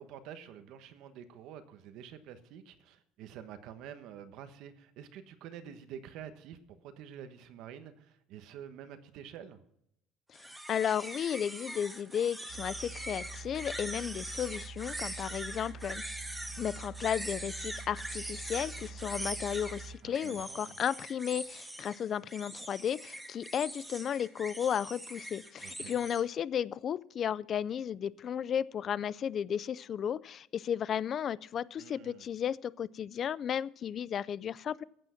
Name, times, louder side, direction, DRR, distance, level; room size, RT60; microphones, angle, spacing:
voice 1, 0.0-9.6 20.0-20.8 25.6-26.0 31.8-32.2, right 9 dB, 55° right, 1.2 m, -48 dB
sound 1, 10.3-26.2, right 1 dB, 5° right, 1.1 m, -42 dB
voice 2, 10.4-16.0 16.6-34.8, left 9 dB, 30° left, 0.4 m, -34 dB
sound 2, 12.5-20.0, right 4 dB, 35° right, 1.0 m, -46 dB
14.0 x 9.0 x 5.8 m
cardioid pair, 180°, 0 cm